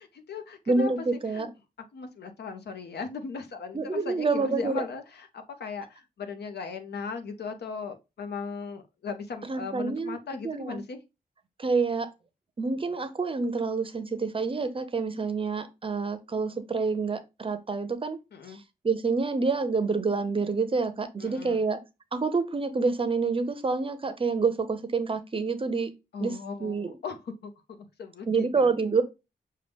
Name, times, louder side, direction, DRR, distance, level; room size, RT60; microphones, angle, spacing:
voice 1, 0.0-1.5 1.9-11.0 18.3-18.6 21.2-21.7 26.1-27.5 28.0-28.7, left 5 dB, 85° left, 0.7 m, -38 dB
voice 2, 0.7-1.5 3.7-4.8 9.5-10.2 10.4-10.8 11.6-12.1 12.6-18.2 18.5-18.6 18.8-21.8 22.1-25.9 26.2-26.3 26.6-26.9 28.3-29.0, right 4 dB, 30° right, 0.5 m, -27 dB
6.5 x 2.2 x 3.4 m
wide cardioid pair, 120°, 17 cm